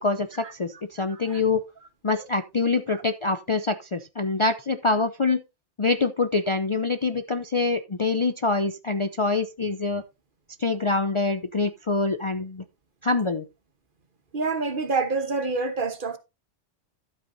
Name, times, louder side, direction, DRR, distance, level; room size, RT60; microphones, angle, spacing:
voice 1, 0.0-1.6 2.0-5.4 5.8-10.0 10.6-12.6 13.0-13.5, left 3 dB, 35° left, 0.5 m, -25 dB
voice 2, 1.1-1.4 14.3-16.2, right 4 dB, 50° right, 1.3 m, -27 dB
12.0 x 8.3 x 2.6 m
omnidirectional pair, 1.2 m